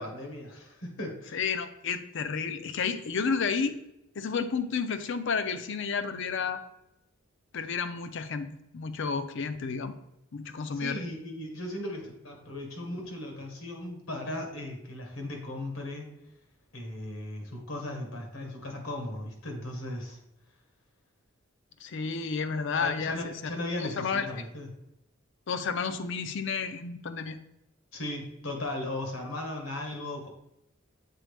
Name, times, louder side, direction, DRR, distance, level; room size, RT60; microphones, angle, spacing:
voice 1, 0.0-1.4 10.7-16.1 16.7-20.2 22.8-24.7 27.9-30.3, left 1 dB, 90° left, 2 dB, 1.6 m, -37 dB
voice 2, 1.3-3.7 4.2-6.6 7.5-9.9 10.3-11.0 21.8-23.5 23.8-24.5 25.5-27.4, left 5 dB, 65° left, 10 dB, 0.5 m, -31 dB
7.6 x 4.1 x 3.4 m, 0.84 s
head